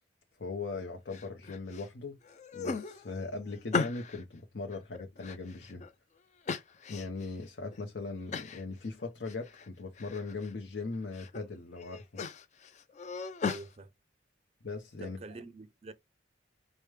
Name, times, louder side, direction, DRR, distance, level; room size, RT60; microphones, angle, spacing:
voice 1, 0.4-2.2 2.5-5.9 6.9-12.2 14.6-15.2, left 3 dB, 70° left, 0.7 m, -39 dB
sound 1, 1.1-1.9 2.2-4.2 4.7-5.9 6.5-7.3 7.7-7.8 8.3-8.6 9.0-9.7 10.0-10.5 10.9-11.4 11.8-13.7, left 4 dB, 40° left, 0.4 m, -37 dB
voice 2, 13.4-13.9 15.0-15.9, right 3 dB, 35° right, 0.4 m, -46 dB
4.9 x 2.1 x 3.1 m
head